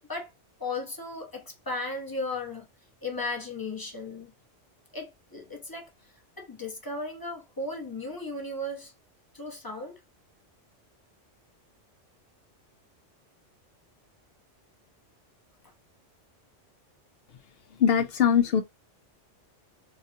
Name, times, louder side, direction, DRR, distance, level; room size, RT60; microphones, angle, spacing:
voice 1, 0.6-2.6 3.0-4.3 4.9-5.9 6.4-8.9 9.3-10.0, left 2 dB, 20° left, 0.7 m, -35 dB
voice 2, 17.8-18.6, left 8 dB, 65° left, 0.7 m, -21 dB
4.2 x 2.2 x 2.7 m
omnidirectional pair, 1.3 m